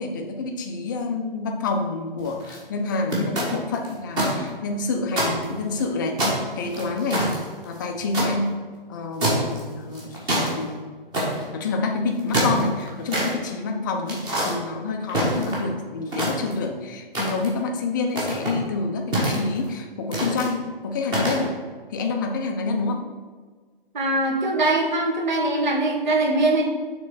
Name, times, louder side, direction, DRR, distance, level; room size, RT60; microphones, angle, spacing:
voice 1, 0.0-6.2 6.6-7.4 7.6-8.6 8.9-10.9 11.5-21.6 21.9-23.1, left 3 dB, 20° left, 3 dB, 0.5 m, -28 dB
sound 1, 2.2-2.6 3.1-4.3 4.7-4.8 5.1-5.8 6.2-8.3 9.2-9.6 9.9-10.5 11.1-11.5 12.1-13.3 14.1-14.5 15.1-15.7 16.1-16.7 17.1-17.6 18.1-18.6 19.1-19.7 20.1-20.5 21.1-21.4, right 1 dB, 15° right, 1.3 m, -25 dB
voice 2, 23.9-26.7, right 2 dB, 50° right, 0 dB, 1.6 m, -22 dB
6.4 x 3.8 x 5.7 m, 1.5 s
figure-of-eight pair, 140°, 29 cm